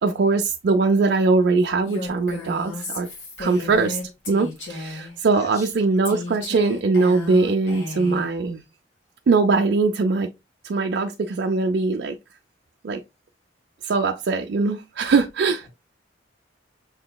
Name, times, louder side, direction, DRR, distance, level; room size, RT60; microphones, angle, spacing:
voice 1, 0.0-3.1 3.4-4.0 4.3-8.6 9.3-10.3 10.6-12.2 12.8-13.0 13.8-15.7, right 3 dB, 60° right, 0.4 m, -21 dB
Female speech woman speaking, 1.9-5.1 6.0-8.3, left 2 dB, 80° left, 1.7 m, -34 dB
voice 2, 5.3-6.0 15.6-15.7, right 1 dB, 15° left, 1.3 m, -44 dB
6.5 x 2.9 x 2.2 m
head